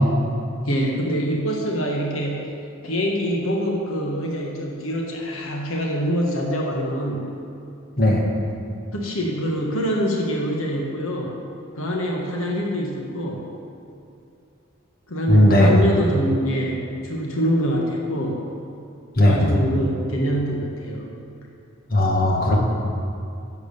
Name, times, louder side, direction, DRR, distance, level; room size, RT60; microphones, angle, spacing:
voice 1, 0.6-2.5 2.8-7.3 8.9-11.4 11.8-13.4 15.1-18.4 19.2-21.1, equal, 75° left, 0 dB, 1.4 m, -25 dB
voice 2, 15.3-15.7 19.2-19.4 21.9-22.6, left 1 dB, 45° left, -1 dB, 1.6 m, -16 dB
11.0 x 7.5 x 6.8 m, 2.6 s
head